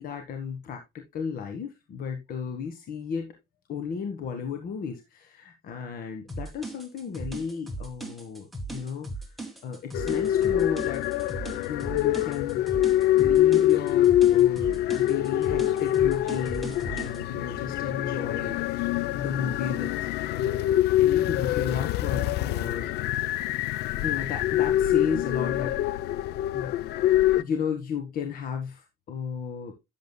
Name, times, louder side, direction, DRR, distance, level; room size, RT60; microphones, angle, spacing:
voice 1, 0.0-3.3 3.7-9.3 9.6-11.0 11.7-12.6 13.2-22.9 24.0-26.1 26.5-26.7 27.4-29.7, left 6 dB, 60° left, 1.5 m, -34 dB
sound 1, 6.3-17.2, right 2 dB, ahead, 2.0 m, -38 dB
sound 2, 9.9-27.4, left 13 dB, 75° left, 0.5 m, -25 dB
11.0 x 7.7 x 2.2 m
cardioid pair, 110°, 17 cm